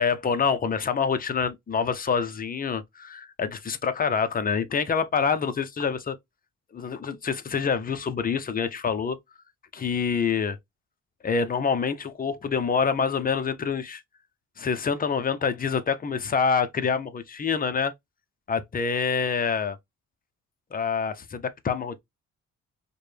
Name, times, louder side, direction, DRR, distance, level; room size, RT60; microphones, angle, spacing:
voice 1, 0.0-6.2 6.7-9.2 9.7-10.6 11.2-14.0 14.6-17.9 18.5-19.8 20.7-22.0, left 6 dB, 30° left, 0.6 m, -26 dB
4.9 x 2.2 x 3.2 m
cardioid pair, 90°, 30 cm